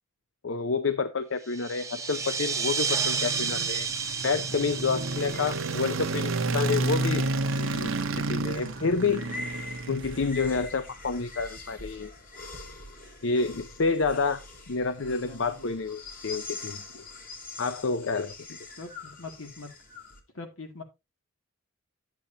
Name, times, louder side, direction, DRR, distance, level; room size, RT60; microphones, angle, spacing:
voice 1, 0.4-3.9 4.2-9.4 9.9-12.1 13.2-14.4 14.7-17.0 17.6-18.6, left 4 dB, 65° left, 11 dB, 0.6 m, -29 dB
sound 1, 1.4-7.6, right 6 dB, 15° right, 0.8 m, -32 dB
sound 2, 2.2-10.6, right 2 dB, 75° right, 0.9 m, -31 dB
sound 3, 3.8-20.2, left 3 dB, 45° left, 2.1 m, -45 dB
voice 2, 15.0-15.7 18.8-19.7 20.3-20.8, left 3 dB, 85° left, 5 dB, 2.3 m, -43 dB
10.5 x 8.4 x 2.8 m, 0.24 s
head